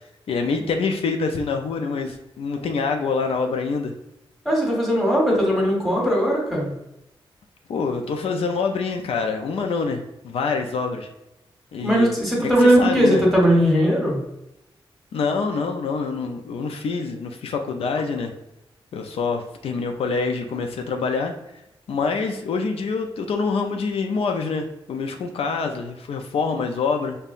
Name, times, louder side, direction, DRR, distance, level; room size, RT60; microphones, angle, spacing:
voice 1, 0.3-3.9 7.7-11.1 11.7-12.1 12.4-13.2 15.1-18.3 18.9-21.3 21.9-27.2, left 4 dB, 80° left, 4 dB, 0.4 m, -26 dB
voice 2, 4.4-6.7 11.8-14.2, equal, ahead, -3 dB, 1.2 m, -19 dB
5.3 x 2.2 x 2.4 m, 0.88 s
wide cardioid pair, 115°, 10 cm